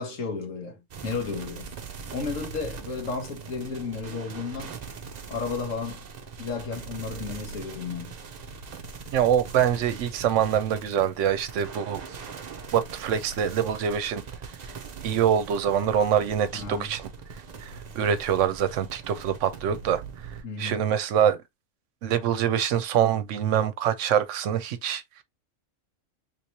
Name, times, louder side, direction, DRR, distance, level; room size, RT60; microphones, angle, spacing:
voice 1, 0.0-1.7 2.1-4.7 5.3-6.0 6.4-8.1 16.5-16.9 20.4-20.8, left 4 dB, 75° left, 1.6 m, -33 dB
sound 1, 0.9-20.4, right 5 dB, 45° right, 0.6 m, -41 dB
voice 2, 9.1-12.2 12.7-14.2 15.0-17.1 17.6-20.0 20.6-21.4 22.0-25.0, right 9 dB, 75° right, 0.9 m, -25 dB
3.5 x 3.1 x 2.7 m
omnidirectional pair, 1.3 m